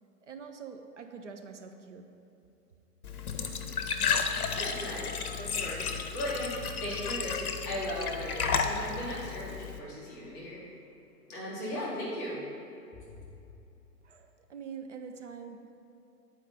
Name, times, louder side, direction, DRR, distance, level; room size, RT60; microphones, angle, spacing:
voice 1, 0.2-2.0 14.0-15.7, right 6 dB, 50° right, 5 dB, 0.5 m, -45 dB
Glass / Trickle dribble / Fill (with liquid), 3.0-9.8, left 6 dB, 65° left, 0.7 m, -33 dB
voice 2, 4.6-5.1 5.4-10.6 11.3-12.4, equal, 10° left, -7 dB, 0.5 m, -37 dB
9.2 x 4.4 x 3.9 m, 2.8 s
figure-of-eight pair, 115°, 48 cm